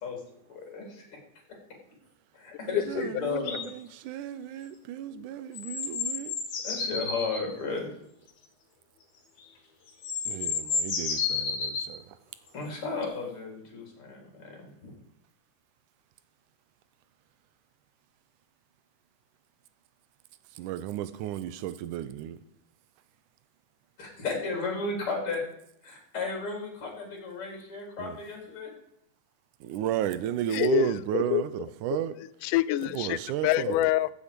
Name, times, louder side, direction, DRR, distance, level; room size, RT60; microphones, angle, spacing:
voice 1, 0.5-1.0 2.3-3.6 6.6-7.9 12.5-14.9 24.0-25.4 25.8-28.7, left 4 dB, 45° left, 4.3 m, -34 dB
sound 1, 3.4-3.7 5.5-7.5 9.4-9.5 9.9-11.9 13.0-13.1, left 5 dB, 70° left, 3.3 m, -31 dB
voice 2, 4.1-6.3 10.3-12.0 20.6-22.4 29.6-31.5 31.8-32.1 33.0-33.7, right 12 dB, 80° right, 2.2 m, -32 dB
voice 3, 30.5-31.4 32.1-34.1, left 15 dB, 90° left, 2.1 m, -26 dB
15.0 x 8.2 x 5.2 m
omnidirectional pair, 3.6 m